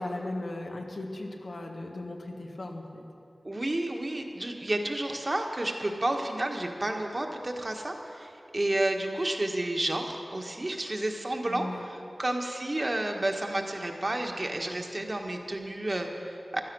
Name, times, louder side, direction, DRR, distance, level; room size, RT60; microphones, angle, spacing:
voice 1, 0.0-3.0 11.4-11.9, left 2 dB, 70° left, 1 dB, 1.6 m, -37 dB
voice 2, 3.4-16.6, right 1 dB, 40° right, 2 dB, 1.5 m, -31 dB
15.5 x 12.0 x 6.3 m, 2.6 s
wide cardioid pair, 70°, 0 cm